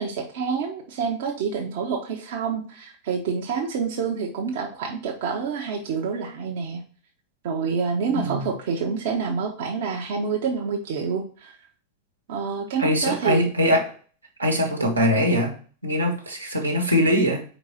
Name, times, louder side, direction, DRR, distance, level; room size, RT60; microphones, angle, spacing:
voice 1, 0.0-6.8 7.4-11.5 12.3-13.5, right 5 dB, 50° right, 1 dB, 1.0 m, -27 dB
voice 2, 8.1-8.5 12.8-13.9 14.4-15.6 15.8-17.4, equal, 85° right, -1 dB, 1.4 m, -22 dB
4.8 x 4.1 x 5.5 m, 0.41 s
figure-of-eight pair, 90°, 0 cm